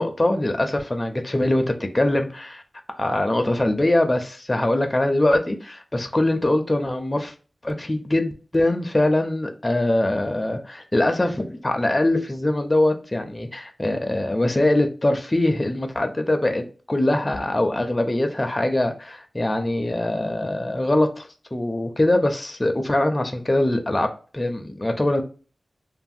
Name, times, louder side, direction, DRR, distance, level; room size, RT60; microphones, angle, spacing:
voice 1, 0.0-2.6 3.0-7.3 7.6-25.2, left 1 dB, 20° left, 5 dB, 0.4 m, -22 dB
3.1 x 2.1 x 2.6 m, 0.37 s
wide cardioid pair, 110°, 0 cm